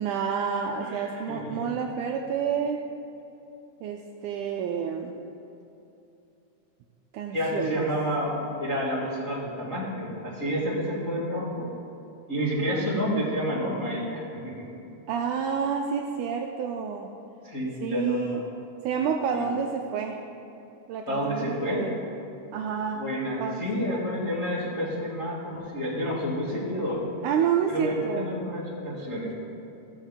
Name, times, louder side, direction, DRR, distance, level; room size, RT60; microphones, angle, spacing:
voice 1, 0.0-2.8 3.8-5.2 7.1-7.9 15.1-17.1 17.8-18.4 18.8-20.2 20.9-22.1 22.5-23.1 23.4-24.0 27.2-28.3, right 7 dB, 85° right, 2 dB, 1.8 m, -29 dB
voice 2, 1.3-1.7 7.3-11.7 12.3-14.5 17.4-18.4 19.3-19.5 21.1-21.8 22.9-27.0 27.7-29.3, equal, 40° left, -10 dB, 1.1 m, -29 dB
15.5 x 7.2 x 3.5 m, 2.8 s
omnidirectional pair, 4.1 m